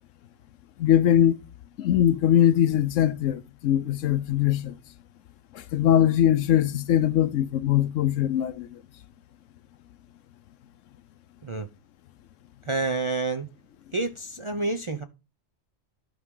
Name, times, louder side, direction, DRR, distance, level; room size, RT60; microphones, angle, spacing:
voice 1, 0.8-1.4 1.8-4.7 5.7-8.7, left 11 dB, 80° left, 1.0 m, -21 dB
voice 2, 12.6-13.5 13.9-15.0, right 3 dB, 35° right, 0.5 m, -28 dB
12.5 x 4.8 x 3.7 m
omnidirectional pair, 1.3 m